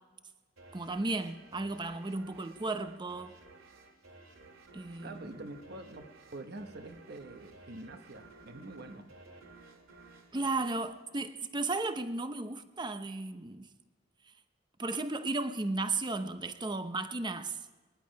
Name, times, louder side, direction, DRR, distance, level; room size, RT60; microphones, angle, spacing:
sound 1, 0.6-11.8, right 3 dB, 85° right, 2.5 m, -55 dB
voice 1, 0.7-3.3 4.7-5.5 10.3-13.7 14.8-17.6, right 2 dB, 20° right, 0.7 m, -34 dB
voice 2, 5.0-9.1, right 2 dB, 55° right, 1.1 m, -46 dB
21.0 x 10.5 x 5.2 m
head